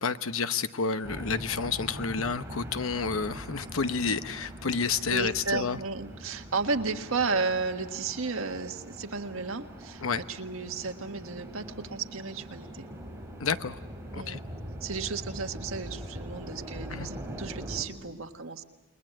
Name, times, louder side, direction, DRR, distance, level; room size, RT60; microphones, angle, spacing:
voice 1, 0.0-5.8 10.0-10.2 13.4-13.8 14.1-14.4 16.9-17.1, left 5 dB, 80° left, 11 dB, 0.9 m, -30 dB
sound 1, 1.0-17.8, equal, 15° right, 3.5 m, -42 dB
voice 2, 5.1-12.9 14.2-14.4 14.8-18.6, right 4 dB, 80° right, 5 dB, 1.6 m, -33 dB
29.5 x 21.0 x 7.8 m, 1.2 s
head